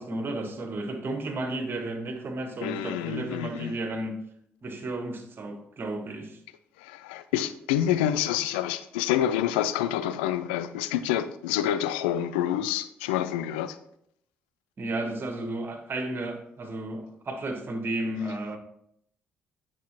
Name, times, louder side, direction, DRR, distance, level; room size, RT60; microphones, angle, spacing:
voice 1, 0.0-4.2 4.6-6.4 14.8-18.6, right 1 dB, 45° right, 1.4 m, -33 dB
voice 2, 2.6-3.7 6.8-13.8, left 11 dB, 85° left, 0.4 m, -27 dB
9.1 x 6.1 x 3.0 m
hypercardioid pair, 50°, 5 cm